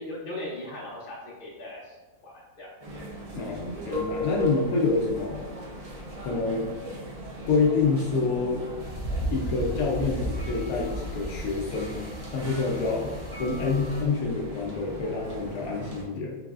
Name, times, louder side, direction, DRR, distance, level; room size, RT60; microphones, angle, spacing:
voice 1, 0.0-2.0 2.2-2.7, left 1 dB, 40° left, -5 dB, 1.1 m, -38 dB
sound 1, 2.8-16.0, equal, 70° right, 0.3 m, -37 dB
voice 2, 3.3-5.4 6.2-6.7 7.5-8.6 9.3-13.1 13.4-16.4, left 4 dB, 80° left, -2 dB, 1.1 m, -27 dB
sound 2, 8.8-14.0, equal, 20° left, 0.7 m, -35 dB
3.9 x 3.3 x 2.4 m, 1.2 s
omnidirectional pair, 1.6 m